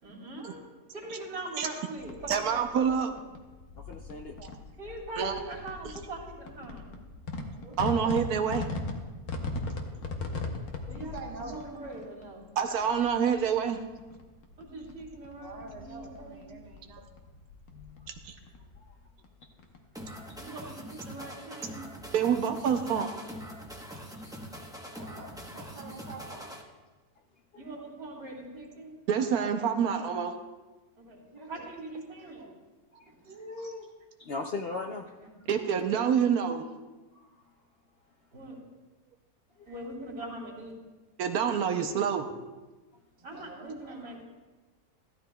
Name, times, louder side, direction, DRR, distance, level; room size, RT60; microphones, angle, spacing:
voice 1, 0.0-0.7 0.9-3.2 4.8-7.0 10.9-12.5 14.6-16.5 20.4-21.8 27.5-28.9 31.0-32.4 38.3-38.6 39.7-40.7 43.2-44.2, right 2 dB, 70° right, -3 dB, 3.1 m, -42 dB
sound 1, 2.0-20.1, left 3 dB, 80° left, 1.5 m, -40 dB
voice 2, 2.3-3.1 5.2-5.3 7.8-8.7 12.6-13.8 18.2-18.3 22.1-23.1 29.1-30.3 35.5-36.7 41.2-42.3, right 7 dB, 90° right, 6 dB, 1.2 m, -27 dB
voice 3, 3.8-4.3 17.7-18.1 18.8-18.9 20.2-20.4 27.5-27.6 33.0-33.1 34.3-35.0, left 3 dB, 55° left, 2 dB, 0.7 m, -38 dB
voice 4, 7.5-8.1 9.5-9.6 10.8-11.6 15.4-17.1 24.9-26.6 31.3-31.7 32.4-32.5 33.2-33.9 43.3-43.7, right 2 dB, 30° right, 0 dB, 1.3 m, -45 dB
sound 2, 19.9-26.6, equal, 5° right, 0.7 m, -43 dB
15.0 x 12.5 x 2.3 m, 1.2 s
omnidirectional pair, 1.6 m